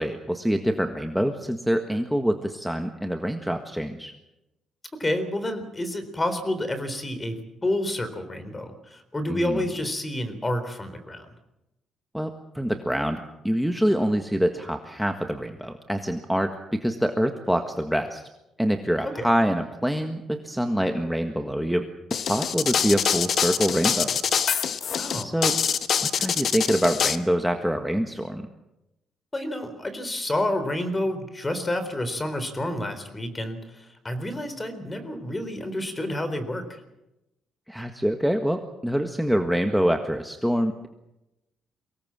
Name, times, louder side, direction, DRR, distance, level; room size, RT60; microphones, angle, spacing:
voice 1, 0.0-4.1 9.3-9.6 12.1-13.2 13.4-18.3 18.6-24.1 25.2-25.6 26.0-28.5 37.7-40.9, equal, ahead, 5 dB, 1.6 m, -25 dB
voice 2, 5.0-11.3 19.0-19.3 25.0-25.4 29.3-36.8, left 1 dB, 20° left, 10 dB, 3.9 m, -29 dB
sound 1, 22.1-27.2, left 7 dB, 60° left, 1.2 m, -24 dB
24.0 x 18.5 x 7.6 m, 0.94 s
cardioid pair, 90°, 0 cm